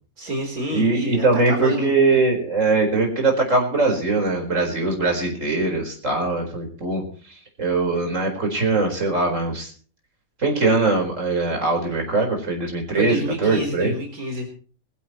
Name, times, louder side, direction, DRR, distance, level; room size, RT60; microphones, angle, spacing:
voice 1, 0.2-2.2 13.0-14.5, equal, 85° right, 2 dB, 4.3 m, -29 dB
voice 2, 0.7-9.7 10.4-13.9, right 3 dB, 60° right, 2 dB, 4.9 m, -21 dB
22.0 x 15.5 x 3.1 m, 0.40 s
omnidirectional pair, 1.5 m